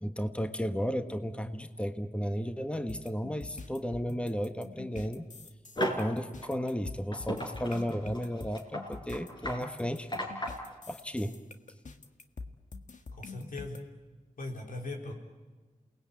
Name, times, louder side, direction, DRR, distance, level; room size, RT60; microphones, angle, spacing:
voice 1, 0.0-5.3 5.9-10.1 10.9-11.3, equal, 10° left, 8 dB, 1.4 m, -34 dB
sound 1, 2.9-13.8, left 3 dB, 65° left, 1.8 m, -46 dB
sound 2, 5.7-6.1 6.4-6.5 7.1-10.7, equal, 35° left, 5.2 m, -35 dB
voice 2, 13.1-13.8 14.4-15.1, left 2 dB, 85° left, 1 dB, 4.5 m, -39 dB
28.5 x 19.5 x 9.0 m, 1.3 s
cardioid pair, 55°, 14 cm